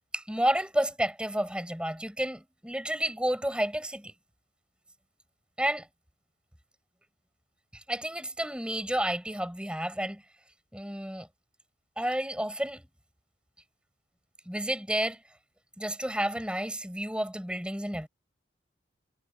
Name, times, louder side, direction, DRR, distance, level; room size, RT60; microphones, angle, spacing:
voice 1, 0.1-4.1 5.6-5.9 7.7-10.2 10.7-11.3 12.0-12.9 14.4-15.2 15.8-18.1, right 1 dB, 5° right, 6.7 m, -31 dB
head